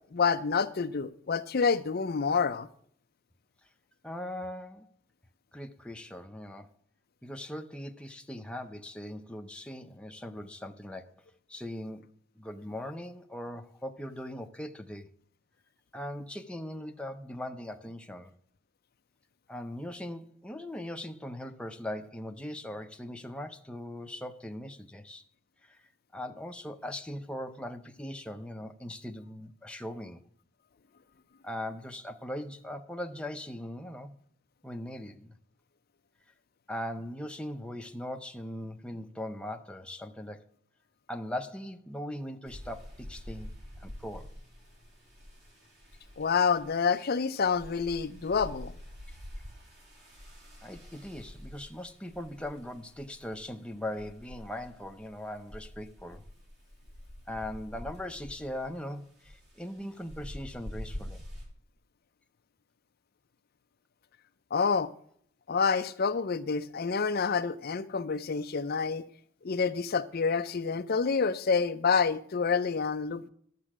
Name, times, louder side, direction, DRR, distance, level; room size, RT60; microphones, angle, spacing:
voice 1, 0.1-2.7 46.2-48.7 64.5-64.9 65.5-69.0 69.4-73.3, left 5 dB, 45° left, 0.5 m, -28 dB
voice 2, 4.0-4.9 5.5-6.7 7.2-11.1 11.5-15.1 15.9-18.3 19.5-25.2 25.6-25.8 26.1-30.2 31.4-34.1 34.6-35.4 36.7-40.4 41.1-43.5 43.8-44.3 50.6-56.2 57.3-61.2, left 1 dB, 5° left, 0.7 m, -40 dB
sound 1, 42.4-61.5, equal, 50° right, 3.6 m, -47 dB
12.0 x 7.5 x 6.0 m
head